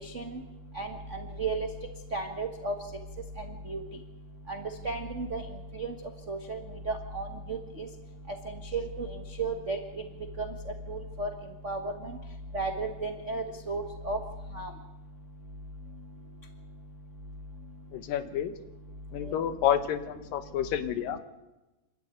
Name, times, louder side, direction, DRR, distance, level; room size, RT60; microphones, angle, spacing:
voice 1, 2.1-2.7 3.7-3.8 4.8-5.4 5.8-5.9 6.3-6.6 6.9-7.3 8.7-9.1 9.4-9.8 10.9-11.3 11.6-11.8 12.5-14.2 14.6-14.7, right 3 dB, 60° right, 3 dB, 0.7 m, -32 dB
voice 2, 17.9-18.5 19.1-21.2, left 10 dB, 90° left, 10 dB, 2.8 m, -29 dB
27.0 x 13.0 x 9.3 m, 1.1 s
omnidirectional pair, 3.8 m